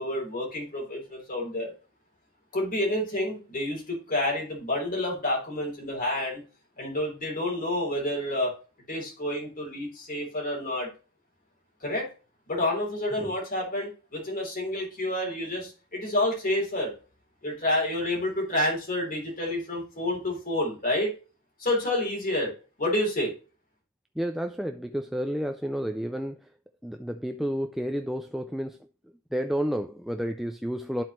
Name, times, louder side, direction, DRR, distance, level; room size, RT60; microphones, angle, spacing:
voice 1, 0.0-1.7 2.5-6.4 6.8-8.5 8.9-10.9 11.8-12.1 12.5-16.9 17.4-21.1 21.6-22.5 22.8-23.3, left 1 dB, 40° left, 3.4 m, -29 dB
voice 2, 24.2-26.5 26.8-28.9 29.3-31.0, equal, ahead, 0.3 m, -31 dB
12.5 x 4.4 x 3.0 m
head